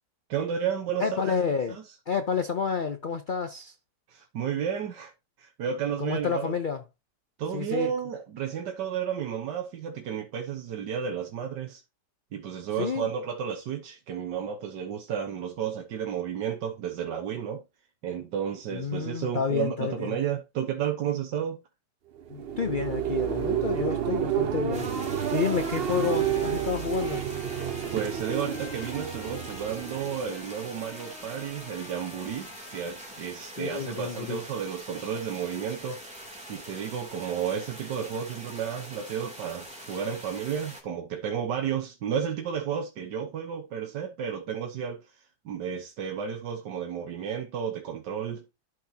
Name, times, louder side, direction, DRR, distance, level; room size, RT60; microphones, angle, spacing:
voice 1, 0.3-1.3 1.7-1.9 4.1-5.1 5.4-6.6 7.4-11.8 12.3-17.6 18.0-21.6 27.9-36.0 36.5-48.5, right 8 dB, 75° right, 1.6 m, -32 dB
voice 2, 1.0-1.8 2.1-3.7 6.0-6.8 7.5-7.9 12.8-13.1 18.7-20.2 22.3-24.9 25.3-27.2 33.6-34.4, left 6 dB, 70° left, 0.4 m, -29 dB
sound 1, 22.2-30.8, right 9 dB, 55° right, 0.7 m, -30 dB
sound 2, 24.7-40.8, right 1 dB, 5° right, 2.8 m, -44 dB
Trumpet, 25.6-33.3, left 4 dB, 40° left, 1.6 m, -50 dB
12.0 x 5.8 x 2.9 m
omnidirectional pair, 1.9 m